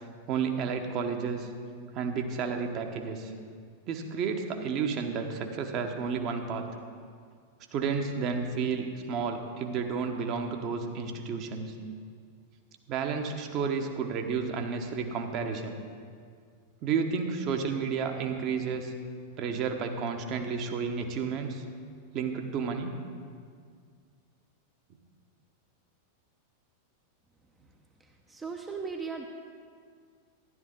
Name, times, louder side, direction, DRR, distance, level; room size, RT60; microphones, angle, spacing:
voice 1, 0.3-1.5 1.9-3.3 3.9-6.7 7.7-11.7 12.9-15.8 16.8-18.9 19.4-21.6 22.1-23.0, right 5 dB, 40° right, 4 dB, 1.1 m, -31 dB
voice 2, 28.0-29.3, right 5 dB, 15° right, 3 dB, 0.7 m, -38 dB
12.5 x 11.0 x 3.8 m, 2.1 s
figure-of-eight pair, 90°, 0 cm